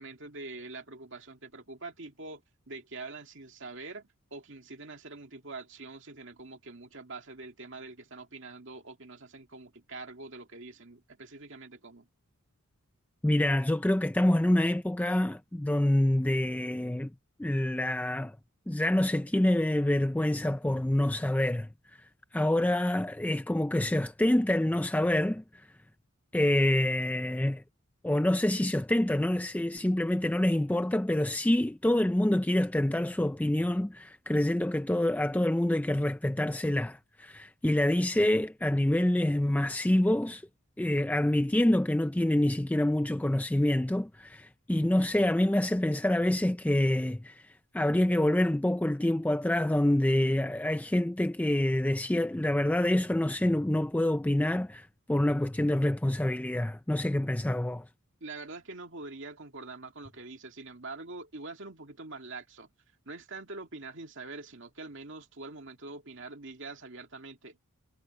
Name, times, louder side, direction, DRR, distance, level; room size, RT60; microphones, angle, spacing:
voice 1, 0.0-2.4 2.7-12.1 58.2-62.7 63.1-67.6, right 3 dB, 55° right, 2.5 m, -44 dB
voice 2, 13.2-17.1 17.4-18.4 18.7-21.7 22.3-25.4 26.3-27.6 28.0-40.4 40.8-57.9, left 1 dB, 5° left, 0.3 m, -26 dB
head